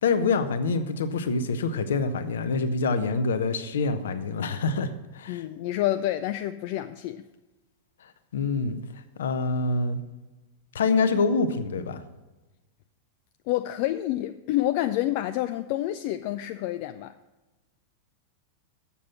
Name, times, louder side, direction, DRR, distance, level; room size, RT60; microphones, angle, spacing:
voice 1, 0.0-5.4 8.0-8.8 9.2-10.0 10.7-12.0, left 4 dB, 65° left, 0.7 m, -26 dB
voice 2, 5.3-7.2 13.5-17.1, left 14 dB, 45° left, 0.3 m, -28 dB
7.4 x 7.0 x 7.1 m
figure-of-eight pair, 90°, 0 cm